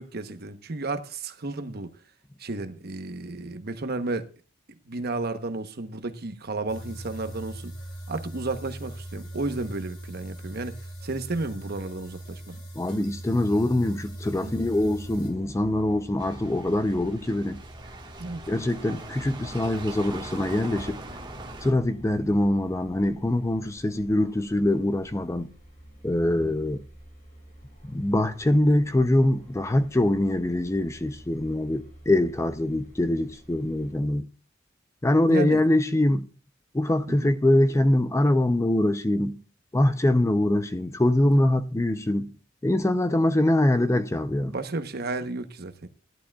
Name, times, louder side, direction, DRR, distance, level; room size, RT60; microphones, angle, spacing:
voice 1, 0.0-1.9 2.4-4.3 4.9-7.7 8.1-10.8 11.0-12.5 14.4-14.7 18.2-18.4 26.4-26.6 35.3-35.6 37.1-37.3 41.3-41.5 44.4-45.9, right 2 dB, 55° right, 1.0 m, -32 dB
sound 1, 6.7-15.3, right 1 dB, 75° left, 5.3 m, -40 dB
voice 2, 12.8-17.6 18.5-21.0 21.6-25.5 26.0-26.8 27.8-34.3 35.0-36.3 36.7-39.4 39.7-42.3 42.6-44.5, left 1 dB, 15° left, 0.5 m, -23 dB
sound 2, 14.2-34.0, equal, 45° left, 5.5 m, -50 dB
sound 3, 16.2-21.7, right 2 dB, 25° right, 1.5 m, -40 dB
16.5 x 11.0 x 2.3 m
head